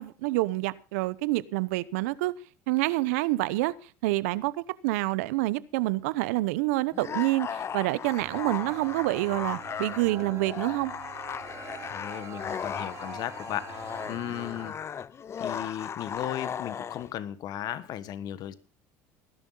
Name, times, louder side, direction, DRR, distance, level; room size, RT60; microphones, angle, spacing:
voice 1, 0.0-2.3 2.7-3.7 4.0-4.5 4.8-10.9, right 19 dB, 80° right, 0.8 m, -27 dB
sound 1, 6.9-17.1, left 7 dB, 35° left, 0.6 m, -37 dB
sound 2, 8.2-14.7, right 6 dB, 40° right, 2.6 m, -44 dB
voice 2, 11.9-14.8 15.4-18.5, left 12 dB, 55° left, 1.3 m, -36 dB
19.0 x 11.0 x 3.9 m
supercardioid pair, 85°, 8 cm